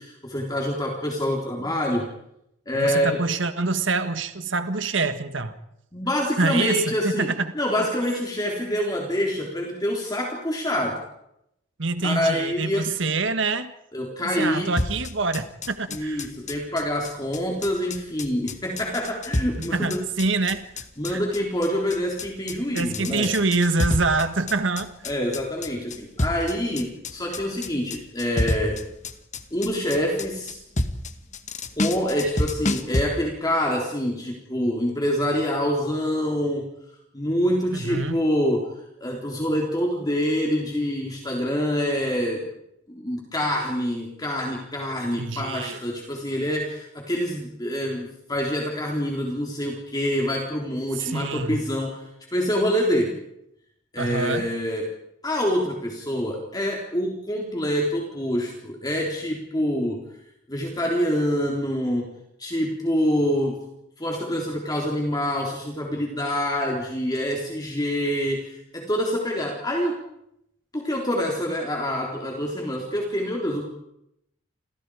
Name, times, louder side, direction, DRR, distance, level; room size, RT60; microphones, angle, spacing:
voice 1, 0.0-2.1 2.7-3.2 5.9-7.3 7.5-11.0 12.0-12.9 13.9-14.7 15.9-20.0 21.0-23.3 25.1-28.9 29.5-30.6 31.8-36.7 37.1-38.7 39.0-42.5 42.9-53.2 53.9-54.9 55.2-60.1 60.5-63.7 64.0-70.0 70.7-73.7, equal, 20° left, -1 dB, 3.8 m, -26 dB
voice 2, 2.7-5.5 6.4-7.5 11.8-13.7 14.3-16.3 19.6-21.2 22.7-24.9 37.7-38.2 45.2-45.8 50.9-51.6 54.0-54.5, right 3 dB, 65° right, 9 dB, 1.7 m, -26 dB
sound 1, 14.8-33.0, left 1 dB, 35° left, 1.9 m, -29 dB
30.0 x 27.5 x 5.0 m, 0.80 s
head